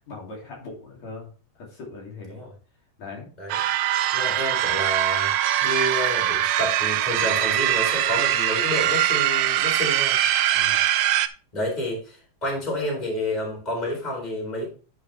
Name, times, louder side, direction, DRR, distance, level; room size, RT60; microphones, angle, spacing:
voice 1, 0.1-1.3 1.6-2.4 3.0-3.3 10.5-10.8, left 3 dB, 65° left, -3 dB, 4.0 m, -39 dB
sound 1, 3.5-11.3, right 12 dB, 85° right, 1.4 m, -22 dB
voice 2, 4.1-5.3 5.6-10.2 11.5-14.7, left 1 dB, 15° left, -2 dB, 4.1 m, -29 dB
11.5 x 6.2 x 3.3 m, 0.37 s
omnidirectional pair, 3.4 m